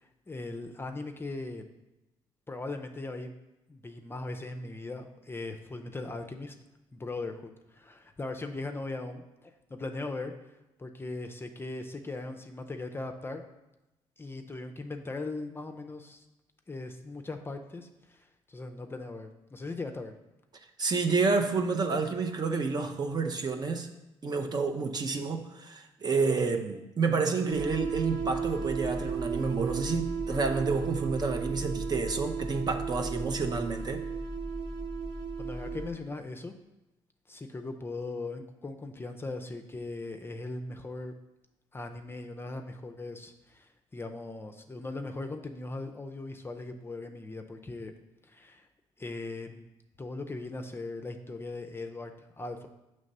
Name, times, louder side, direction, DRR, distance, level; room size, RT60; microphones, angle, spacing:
voice 1, 0.3-1.6 2.5-3.3 3.7-6.6 6.9-10.3 10.8-13.4 14.2-16.2 16.7-20.1 35.4-36.5 37.3-41.1 41.7-47.9 48.2-48.7 49.0-49.6 50.0-52.7, left 2 dB, 20° left, 5 dB, 0.5 m, -39 dB
voice 2, 20.8-23.9 24.2-34.1, right 4 dB, 35° right, 5 dB, 0.7 m, -29 dB
sound 1, 27.5-35.9, right 4 dB, 90° right, 0.9 m, -34 dB
6.3 x 3.2 x 5.4 m, 0.96 s
supercardioid pair, 75°, 11 cm